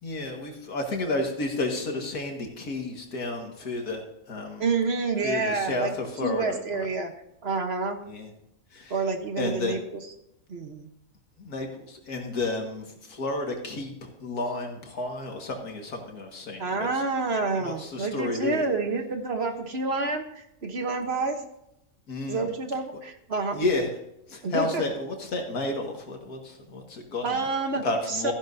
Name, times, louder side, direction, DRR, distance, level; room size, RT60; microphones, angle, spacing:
voice 1, 0.0-4.7 5.2-6.9 8.1-8.3 8.7-8.9 9.4-9.8 11.4-16.9 17.6-18.7 22.1-22.5 23.5-23.9 24.3-27.5 27.8-28.3, left 2 dB, 80° left, 2 dB, 2.3 m, -31 dB
voice 2, 4.6-5.9 6.2-7.1 7.4-8.0 8.9-9.8 10.5-10.9 16.6-21.4 22.3-23.6 24.4-24.8 27.2-28.3, right 3 dB, 45° right, 5 dB, 1.2 m, -28 dB
15.0 x 10.5 x 2.7 m, 0.81 s
omnidirectional pair, 1.6 m